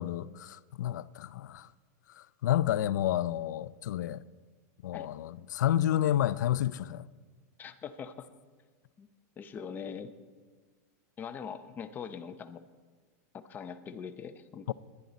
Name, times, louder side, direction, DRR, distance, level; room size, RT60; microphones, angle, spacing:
voice 1, 0.0-1.7 2.4-4.2 4.8-7.0 14.7-14.8, left 12 dB, 85° left, 0.5 m, -30 dB
voice 2, 7.6-8.3 9.0-9.1 9.4-10.1 11.2-12.6 13.3-14.7, left 7 dB, 20° left, 0.7 m, -42 dB
20.0 x 11.0 x 4.1 m
supercardioid pair, 155°, 9 cm